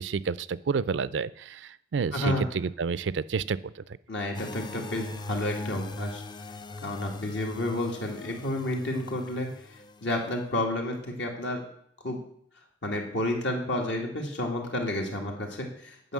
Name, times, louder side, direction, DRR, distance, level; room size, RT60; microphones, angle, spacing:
voice 1, 0.0-3.8, right 5 dB, 90° right, 18 dB, 0.4 m, -30 dB
voice 2, 2.1-2.4 4.1-6.2 6.8-9.5 10.0-11.6 12.0-12.2 12.8-16.1, left 1 dB, 80° left, 1 dB, 2.2 m, -30 dB
sound 1, 4.3-10.3, left 2 dB, 25° left, 0.4 m, -40 dB
9.1 x 5.8 x 7.4 m, 0.68 s
head